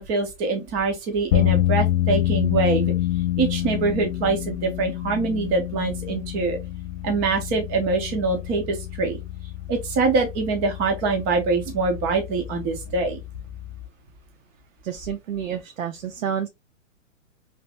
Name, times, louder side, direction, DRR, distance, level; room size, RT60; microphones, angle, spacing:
voice 1, 0.0-2.9 3.4-6.6 7.0-9.2 9.7-13.2, right 4 dB, 15° right, 0.4 m, -24 dB
sound 1, 1.3-13.8, left 14 dB, 45° left, 0.8 m, -27 dB
voice 2, 14.8-16.5, right 8 dB, 85° right, 0.6 m, -29 dB
2.9 x 2.9 x 3.2 m
hypercardioid pair, 135°, 39 cm